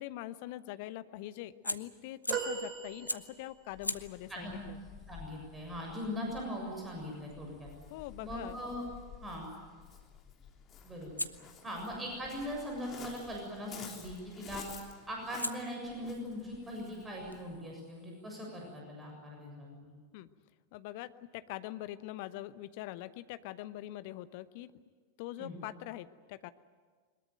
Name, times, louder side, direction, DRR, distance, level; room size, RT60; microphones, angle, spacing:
voice 1, 0.0-4.8 7.9-8.6 20.1-20.3 20.7-24.7 25.2-26.5, left 15 dB, 50° left, 14 dB, 0.9 m, -43 dB
Fire, 1.6-2.6 3.1-3.4 3.8-8.7 11.2-13.3 14.6-14.9 15.4-18.8, left 1 dB, 85° left, 0.8 m, -44 dB
sound 1, 2.3-3.7 4.4-4.5, right 6 dB, 35° right, 2.9 m, -38 dB
Waves surf, 3.7-17.6, left 7 dB, 30° left, 3.3 m, -53 dB
voice 2, 5.1-7.7 8.2-8.9 9.2-9.5 10.8-11.1 11.6-14.7 15.1-19.9 25.4-25.6, equal, 15° right, -1 dB, 7.1 m, -40 dB
22.5 x 21.0 x 9.3 m, 1.5 s
figure-of-eight pair, 90°, 0 cm